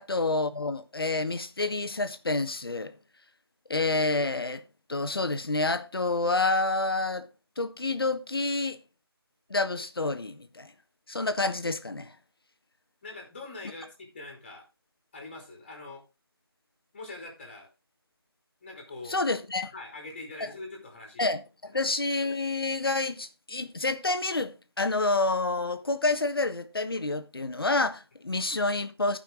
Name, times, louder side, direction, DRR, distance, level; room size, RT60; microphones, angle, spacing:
voice 1, 0.0-2.9 3.7-4.6 4.9-7.3 7.6-8.8 9.5-10.7 11.1-12.1 19.1-19.7 20.4-20.5 21.2-29.2, left 3 dB, 65° left, 1.3 m, -28 dB
voice 2, 13.0-14.6 15.1-16.0 16.9-17.7 18.6-19.2 19.7-21.3, left 2 dB, 25° left, 2.9 m, -43 dB
13.5 x 5.7 x 3.9 m
figure-of-eight pair, 170°, 13 cm